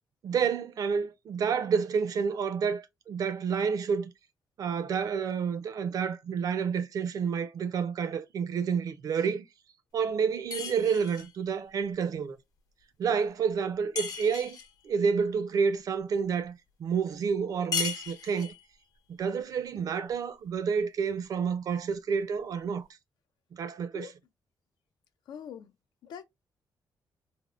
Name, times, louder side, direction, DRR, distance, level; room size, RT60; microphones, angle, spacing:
voice 1, 0.2-4.1 4.6-9.5 9.9-12.4 13.0-14.6 14.8-18.5 19.1-22.9 23.5-24.1, right 6 dB, 55° right, 0.4 m, -29 dB
sound 1, 10.5-11.3 14.0-14.7 17.7-18.6, left 6 dB, 55° left, 0.8 m, -35 dB
voice 2, 25.3-25.7 26.0-26.2, left 8 dB, 85° left, 0.4 m, -42 dB
3.5 x 2.1 x 2.3 m
wide cardioid pair, 145°, 7 cm